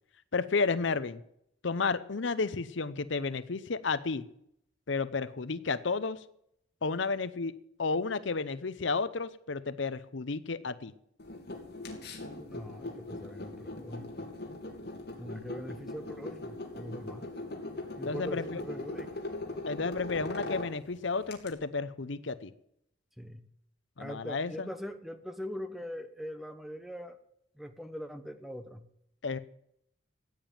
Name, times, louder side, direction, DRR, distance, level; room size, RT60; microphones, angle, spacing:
voice 1, 0.3-1.2 1.6-4.3 4.9-6.2 6.8-7.5 7.8-10.9 18.1-18.6 19.7-22.5 24.0-24.7 29.2-29.4, left 4 dB, 70° left, 14 dB, 0.7 m, -32 dB
sound 1, 11.2-21.5, left 2 dB, 55° left, 3.1 m, -40 dB
voice 2, 12.4-14.1 15.2-17.2 18.0-19.1 23.2-23.4 24.0-27.2 27.5-28.8, equal, ahead, 8 dB, 1.1 m, -42 dB
15.5 x 9.0 x 7.5 m, 0.74 s
head